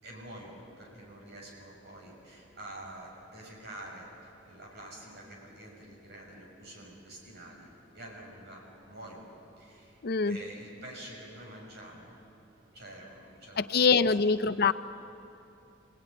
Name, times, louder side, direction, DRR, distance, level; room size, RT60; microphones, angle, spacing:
voice 1, 0.0-9.3 9.6-12.1 12.7-14.2, right 1 dB, 60° right, -1 dB, 6.3 m, -47 dB
voice 2, 10.0-10.4 13.6-14.7, left 5 dB, 55° left, 11 dB, 0.6 m, -24 dB
28.5 x 18.0 x 9.8 m, 2.9 s
head